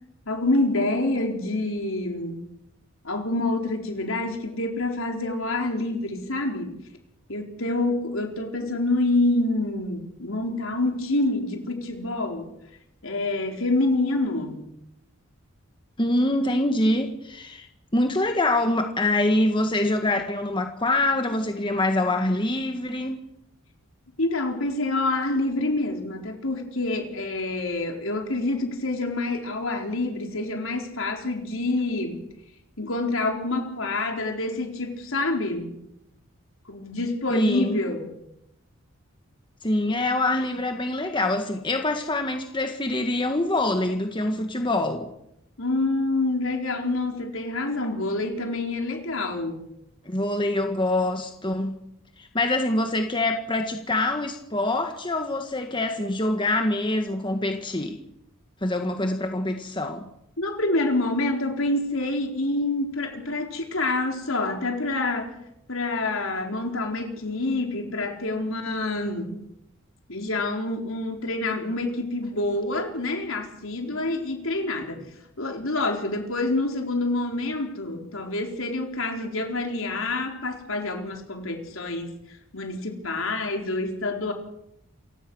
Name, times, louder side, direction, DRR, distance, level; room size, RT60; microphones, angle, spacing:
voice 1, 0.3-2.4 3.0-6.7 7.3-12.5 13.0-14.6 24.2-32.2 32.8-35.8 36.7-38.1 45.6-49.7 60.4-65.3 65.7-69.3 70.1-75.0 75.4-82.2 82.5-84.3, left 2 dB, 70° left, 3 dB, 4.2 m, -27 dB
voice 2, 16.0-17.7 17.9-23.2 37.3-37.8 39.6-45.1 50.0-51.8 52.2-58.0 58.6-60.1, left 1 dB, 25° left, 5 dB, 1.6 m, -25 dB
27.5 x 16.5 x 6.3 m, 0.81 s
head